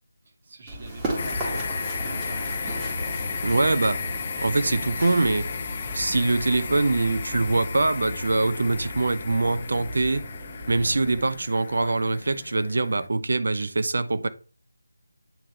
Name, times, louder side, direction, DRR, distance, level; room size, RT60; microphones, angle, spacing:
voice 1, 0.2-3.1 11.7-12.0, right 3 dB, 40° right, 2.1 m, -44 dB
Run, 0.7-11.2, right 1 dB, 10° right, 1.9 m, -36 dB
sound 1, 1.2-13.1, left 6 dB, 30° left, 0.6 m, -34 dB
voice 2, 3.4-4.0 4.4-5.5 5.9-10.3 10.7-14.3, right 2 dB, 60° right, 0.8 m, -23 dB
9.1 x 3.8 x 3.3 m
figure-of-eight pair, 165°, 0 cm